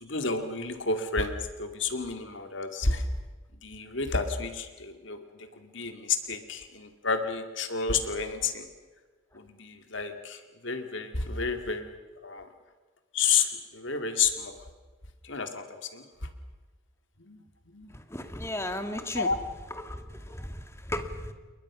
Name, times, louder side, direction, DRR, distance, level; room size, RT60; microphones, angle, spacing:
voice 1, 0.0-3.0 3.6-5.2 5.6-8.7 9.3-11.9 12.2-12.5 13.1-14.6 15.2-16.0 17.3-17.4 17.7-17.9 19.1-19.4, left 5 dB, 60° left, 6 dB, 2.4 m, -30 dB
voice 2, 18.1-19.3 19.8-21.3, left 1 dB, 15° left, 7 dB, 1.8 m, -35 dB
29.0 x 22.0 x 6.2 m, 1.3 s
head